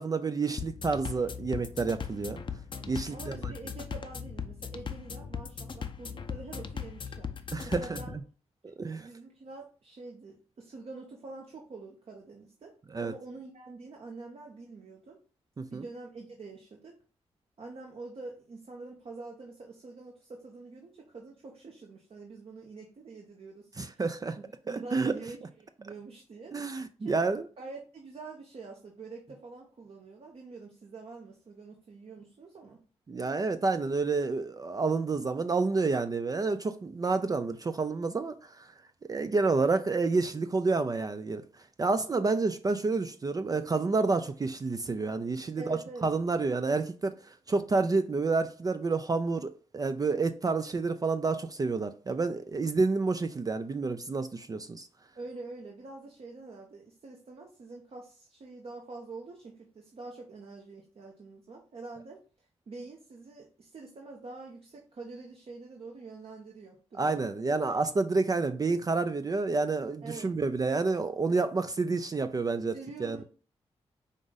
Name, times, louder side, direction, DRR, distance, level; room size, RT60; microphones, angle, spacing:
voice 1, 0.0-2.4 2.9-3.5 7.5-8.0 8.6-9.1 12.9-13.1 15.6-15.8 23.8-24.4 24.7-25.1 26.5-27.4 33.1-38.7 39.1-41.4 41.8-54.9 67.0-73.2, right 3 dB, 30° right, 0.4 m, -29 dB
sound 1, 0.6-8.2, left 6 dB, 45° left, 0.6 m, -39 dB
voice 2, 3.1-7.3 7.6-8.2 8.9-12.7 13.0-15.2 15.7-17.0 17.6-24.0 24.4-26.5 27.0-27.2 27.6-32.8 45.6-46.1 55.1-67.5 70.0-70.3 72.7-73.2, right 3 dB, 55° right, 0.9 m, -46 dB
5.0 x 2.5 x 3.9 m
cardioid pair, 60°, 12 cm